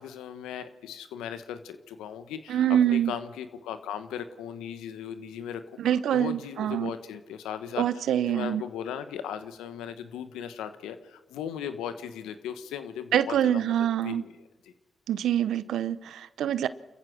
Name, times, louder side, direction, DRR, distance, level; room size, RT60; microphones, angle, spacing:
voice 1, 0.0-14.3 14.6-14.7, left 9 dB, 90° left, 1.2 m, -38 dB
voice 2, 2.5-3.1 5.8-6.9 7.8-8.6 13.1-14.2 15.1-16.7, right 10 dB, 80° right, 0.7 m, -25 dB
29.0 x 15.0 x 6.3 m
supercardioid pair, 40°, 0 cm